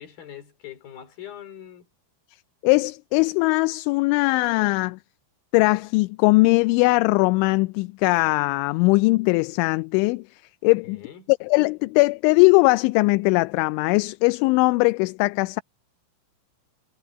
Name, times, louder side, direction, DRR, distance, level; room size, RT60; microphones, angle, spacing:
voice 1, 0.0-1.9 10.9-11.3, left 10 dB, 55° left, 5.4 m, -42 dB
voice 2, 2.6-5.0 5.5-10.2 10.6-11.0 11.3-15.6, left 25 dB, 85° left, 2.9 m, -20 dB
omnidirectional pair, 5.5 m